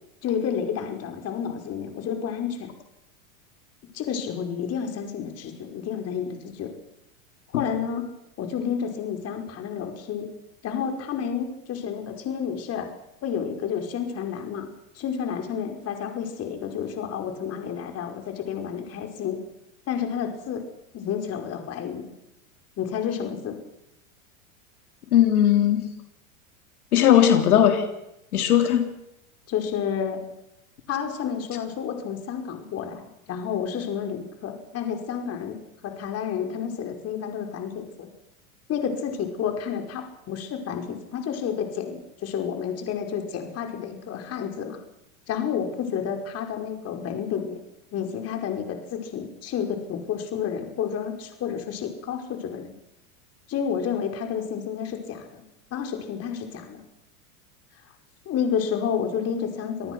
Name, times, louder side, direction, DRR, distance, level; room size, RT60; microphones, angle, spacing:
voice 1, 0.2-2.7 3.9-6.7 7.5-8.1 8.4-10.3 10.6-12.9 13.2-14.7 15.0-19.4 19.9-20.7 20.9-22.1 22.8-23.6 29.5-30.2 30.9-35.6 35.8-38.1 38.7-44.8 45.3-47.6 47.9-52.7 53.5-55.4 55.7-56.8 58.3-59.9, left 7 dB, 35° left, 4 dB, 5.1 m, -30 dB
voice 2, 25.1-25.9 26.9-27.9 28.3-28.9, left 10 dB, 85° left, 4 dB, 3.8 m, -18 dB
27.5 x 19.0 x 6.2 m, 0.87 s
supercardioid pair, 130°, 43 cm